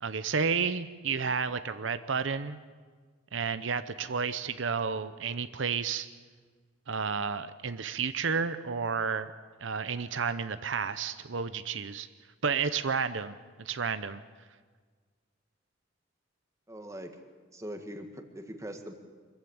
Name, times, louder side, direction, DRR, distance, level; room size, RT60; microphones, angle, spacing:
voice 1, 0.0-2.6 3.3-6.1 6.9-9.3 9.6-12.1 12.4-13.3 13.6-14.2, right 5 dB, 80° right, 12 dB, 0.7 m, -31 dB
voice 2, 16.7-17.1 17.5-18.9, equal, 15° right, 5 dB, 1.8 m, -41 dB
24.5 x 14.5 x 8.9 m, 1.5 s
head